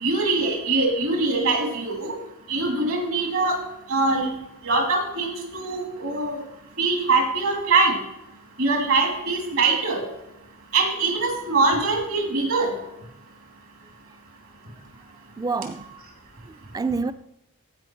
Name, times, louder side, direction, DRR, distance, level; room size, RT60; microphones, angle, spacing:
voice 1, 0.0-2.1 2.5-3.6 3.9-4.3 4.6-6.4 6.8-8.0 8.6-10.1 10.7-12.7, right 3 dB, 65° right, 2.8 m, -23 dB
voice 2, 15.4-15.9 16.4-17.1, right 4 dB, 15° right, 0.3 m, -28 dB
15.0 x 5.4 x 4.5 m
head